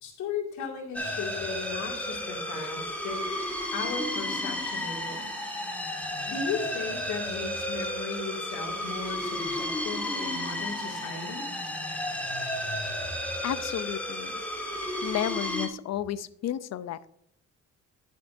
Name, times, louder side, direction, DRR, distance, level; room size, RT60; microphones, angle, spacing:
voice 1, 0.0-3.2 3.7-5.2 6.3-11.5, left 5 dB, 75° left, 1 dB, 2.4 m, -36 dB
sound 1, 0.9-15.7, left 1 dB, 5° left, 1.8 m, -33 dB
voice 2, 13.4-14.5 15.0-17.1, left 11 dB, 60° left, 15 dB, 0.6 m, -32 dB
11.5 x 6.6 x 2.6 m, 0.69 s
cardioid pair, 90°, 30 cm